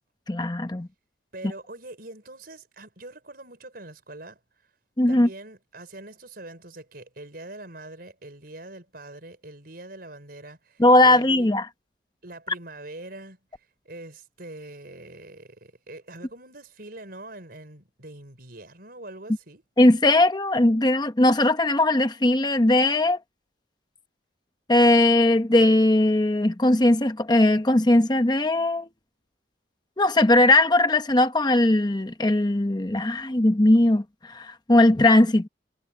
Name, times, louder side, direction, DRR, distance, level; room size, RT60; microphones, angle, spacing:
voice 1, 0.3-0.9 5.0-5.3 10.8-11.6 19.8-23.2 24.7-28.9 30.0-35.5, left 1 dB, 20° left, 0.9 m, -19 dB
voice 2, 1.3-4.4 5.1-11.5 12.2-19.6, right 2 dB, 55° right, 5.7 m, -43 dB
head